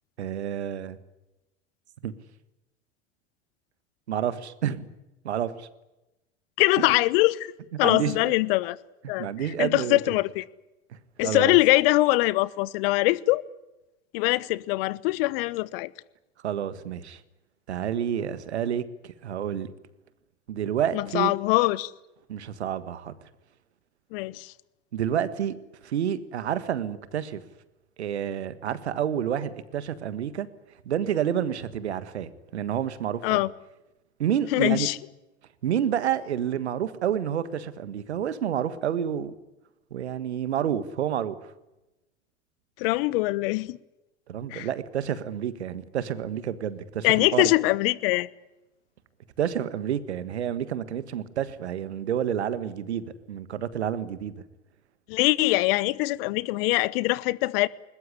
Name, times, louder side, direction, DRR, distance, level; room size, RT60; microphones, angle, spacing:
voice 1, 0.2-1.0 2.0-2.1 4.1-4.9 5.2-5.7 6.8-7.0 7.8-8.3 9.0-10.0 11.2-11.6 16.4-17.2 17.7-19.7 20.5-21.3 22.3-23.3 24.9-25.6 25.8-27.4 28.0-30.5 30.8-33.4 34.2-34.9 35.6-39.3 39.9-41.4 44.3-47.5 49.4-54.3, right 9 dB, 75° right, 1.7 m, -29 dB
voice 2, 6.6-7.5 7.8-8.8 9.1-10.4 11.2-13.4 14.1-15.9 20.9-21.9 24.1-24.5 33.2-33.5 34.5-35.0 42.8-43.8 44.5-44.7 47.0-48.3 55.1-57.7, left 20 dB, 60° left, 1.0 m, -23 dB
21.0 x 21.0 x 10.0 m
figure-of-eight pair, 75°, 33 cm